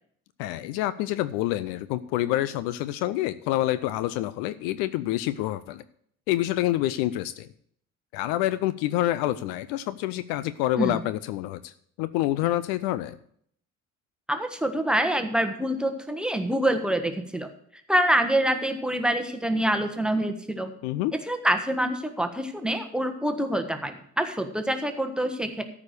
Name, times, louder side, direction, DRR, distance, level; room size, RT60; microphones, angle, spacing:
voice 1, 0.4-5.8 6.3-7.5 8.1-11.7 12.0-13.2 20.8-21.1, left 15 dB, 60° left, 15 dB, 0.5 m, -27 dB
voice 2, 14.3-17.5 17.9-20.7 21.1-25.6, right 1 dB, ahead, 6 dB, 1.3 m, -26 dB
13.5 x 4.9 x 6.7 m, 0.65 s
figure-of-eight pair, 50°, 43 cm